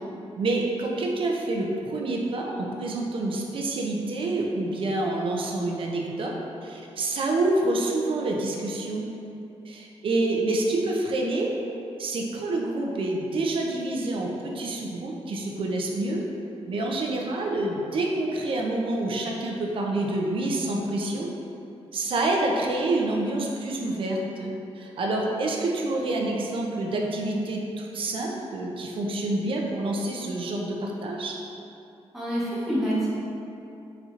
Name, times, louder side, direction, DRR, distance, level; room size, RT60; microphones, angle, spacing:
voice 1, 0.4-6.3 6.6-9.1 9.7-11.5 12.0-16.2 16.7-21.3 21.9-31.3, right 2 dB, 55° right, 0 dB, 0.4 m, -27 dB
voice 2, 32.1-33.1, right 1 dB, ahead, -10 dB, 0.7 m, -26 dB
4.2 x 2.6 x 2.4 m, 2.8 s
wide cardioid pair, 155°, 11 cm